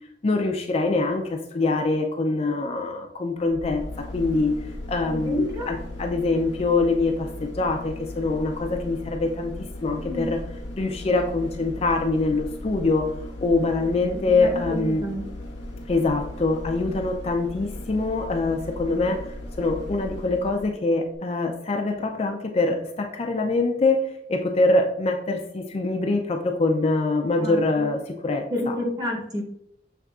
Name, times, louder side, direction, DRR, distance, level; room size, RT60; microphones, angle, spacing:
voice 1, 0.2-1.2 1.5-3.8 4.1-4.5 4.9-7.1 7.6-9.5 9.8-10.4 10.8-13.0 13.4-15.0 15.9-19.2 19.6-24.0 24.3-28.0 28.2-28.7, left 3 dB, 35° left, 3 dB, 0.4 m, -24 dB
sound 1, 3.4-20.8 21.1-21.2, left 1 dB, 80° left, 1.0 m, -37 dB
voice 2, 5.1-5.7 10.0-10.3 14.4-15.2 27.4-27.9 28.5-29.4, left 1 dB, 20° right, 0 dB, 1.0 m, -30 dB
6.5 x 3.3 x 2.4 m, 0.75 s
head